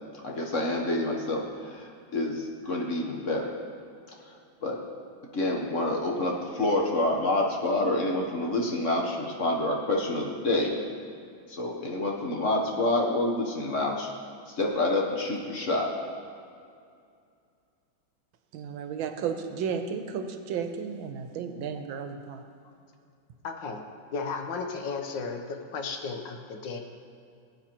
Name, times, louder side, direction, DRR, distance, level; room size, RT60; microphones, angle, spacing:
voice 1, 0.2-3.5 4.6-4.8 5.3-10.8 11.5-14.1 14.5-15.9, left 2 dB, 50° left, 0 dB, 1.1 m, -28 dB
voice 2, 18.5-22.4, right 6 dB, 85° right, 6 dB, 1.5 m, -33 dB
voice 3, 23.4-23.8 24.1-26.8, left 4 dB, 70° left, 5 dB, 1.5 m, -34 dB
17.5 x 8.8 x 2.9 m, 2.4 s
omnidirectional pair, 2.2 m